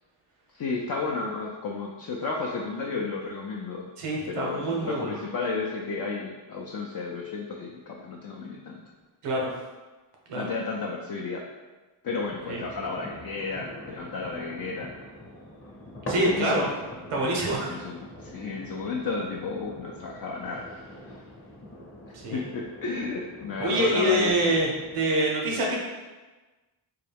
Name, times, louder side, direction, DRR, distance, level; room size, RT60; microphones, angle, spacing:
voice 1, 0.6-3.9 4.3-8.8 10.3-11.5 12.0-14.9 16.1-16.7 17.7-20.7 21.0-21.1 22.3-24.3, left 4 dB, 45° left, -2 dB, 0.5 m, -32 dB
voice 2, 4.0-5.2 9.2-9.5 10.3-10.5 12.5-12.6 16.1-16.7 17.1-17.7 22.1-22.4 23.6-25.8, right 1 dB, 90° right, -2 dB, 0.9 m, -26 dB
sound 1, 12.3-25.1, equal, 25° left, 0.8 m, -43 dB
3.9 x 2.3 x 3.4 m, 1.2 s
cardioid pair, 75°, 50 cm